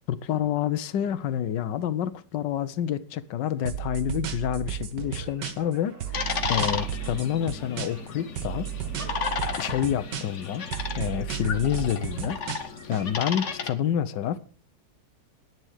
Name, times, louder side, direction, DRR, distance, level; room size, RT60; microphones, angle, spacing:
voice 1, 0.1-8.7 9.6-10.7 11.0-12.4 12.9-14.4, left 10 dB, 85° left, 1.5 m, -28 dB
sound 1, 3.7-5.7 6.0-8.1 8.4-10.4 10.7-13.0, right 10 dB, 75° right, 1.9 m, -33 dB
Speech, 5.0-10.0, right 3 dB, 60° right, 3.3 m, -51 dB
sound 2, 6.1-13.7, left 5 dB, 45° left, 1.4 m, -33 dB
11.0 x 9.3 x 6.4 m
omnidirectional pair, 1.9 m